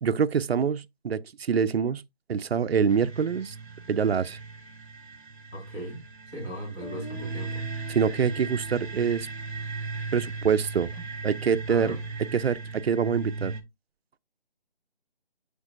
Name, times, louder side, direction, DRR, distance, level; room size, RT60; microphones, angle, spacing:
voice 1, 0.0-2.0 2.3-3.6 3.9-4.4 7.9-9.3 10.1-10.9 11.2-12.0 12.3-13.5, right 6 dB, 70° right, 0.5 m, -25 dB
sound 1, 2.9-13.6, right 3 dB, 50° right, 1.4 m, -37 dB
voice 2, 5.5-6.0 6.3-7.7 11.7-12.0, right 1 dB, 15° left, 1.7 m, -37 dB
Guitar, 6.8-10.7, equal, 85° left, 4.5 m, -46 dB
8.0 x 5.2 x 2.5 m
figure-of-eight pair, 170°, 32 cm